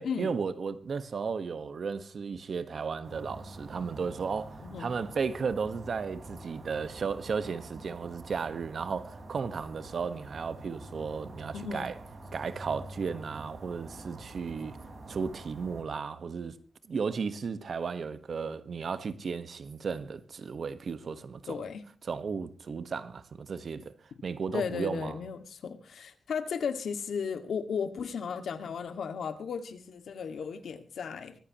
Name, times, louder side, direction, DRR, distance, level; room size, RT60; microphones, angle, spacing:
voice 1, 0.0-12.0 12.3-14.8 15.1-16.6 16.9-21.6 22.1-23.9 24.2-25.2, right 5 dB, 60° right, 1.4 m, -34 dB
sound 1, 3.0-15.8, right 2 dB, 45° right, 5.1 m, -46 dB
voice 2, 11.5-11.9 21.5-21.8 24.5-31.4, left 6 dB, 85° left, 2.0 m, -35 dB
24.5 x 14.5 x 3.1 m
wide cardioid pair, 115°, 0 cm